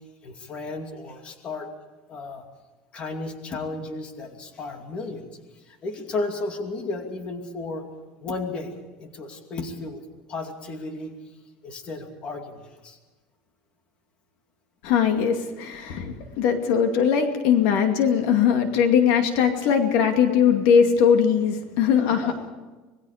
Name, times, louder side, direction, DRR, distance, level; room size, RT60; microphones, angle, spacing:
voice 1, 0.2-1.7 2.1-2.4 2.9-5.3 5.7-7.8 8.2-8.7 9.0-10.0 10.3-11.1 11.6-13.0 22.1-22.3, left 3 dB, 30° left, 4 dB, 2.5 m, -33 dB
voice 2, 14.8-22.5, left 7 dB, 65° left, 5 dB, 2.4 m, -20 dB
26.0 x 20.5 x 5.1 m, 1.2 s
cardioid pair, 160°, 3 cm